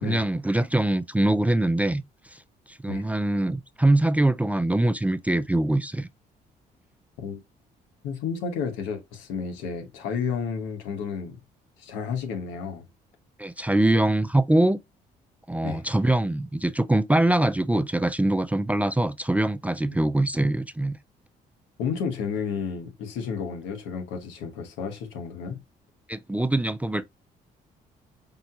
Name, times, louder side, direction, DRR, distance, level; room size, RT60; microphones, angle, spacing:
voice 1, 0.0-2.0 2.3-2.4 2.7-6.1 13.4-14.8 15.5-21.0 26.1-27.1, right 1 dB, 10° right, 0.3 m, -23 dB
voice 2, 8.0-11.4 11.8-12.9 15.6-15.8 21.8-25.6, left 6 dB, 90° left, 1.1 m, -31 dB
5.3 x 2.9 x 2.5 m
supercardioid pair, 70°, 18 cm